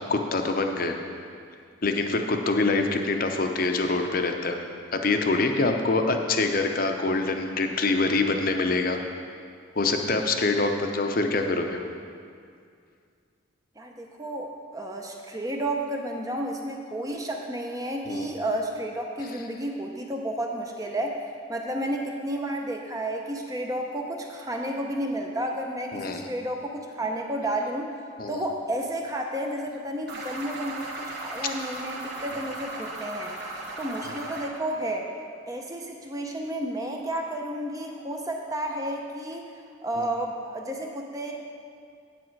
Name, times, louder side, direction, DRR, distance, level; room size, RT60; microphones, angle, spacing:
voice 1, 0.1-1.0 1.8-4.6 4.9-9.0 9.8-11.8 18.1-18.3 25.9-26.2 28.2-28.4 34.0-34.1 40.0-40.1, left 3 dB, 45° left, 5 dB, 0.6 m, -25 dB
voice 2, 13.8-21.2 21.5-27.9 28.3-33.3 33.8-35.1 35.5-39.4 39.8-41.3, right 1 dB, 15° right, 1 dB, 0.6 m, -31 dB
sound 1, 30.1-34.5, right 2 dB, 55° right, 1.4 m, -36 dB
8.7 x 8.4 x 4.6 m, 2.3 s
head